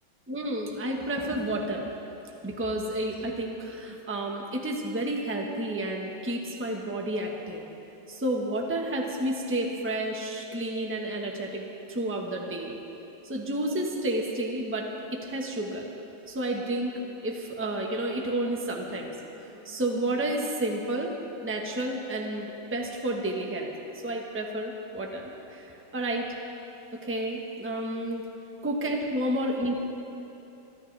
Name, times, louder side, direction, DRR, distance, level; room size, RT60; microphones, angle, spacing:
voice 1, 0.3-1.9 2.4-7.6 8.1-12.8 13.2-15.9 16.3-21.1 21.4-23.7 24.0-26.3 26.9-28.2 28.6-29.8, right 1 dB, 10° right, 0 dB, 0.9 m, -31 dB
26.0 x 13.0 x 3.4 m, 2.9 s
omnidirectional pair, 2.3 m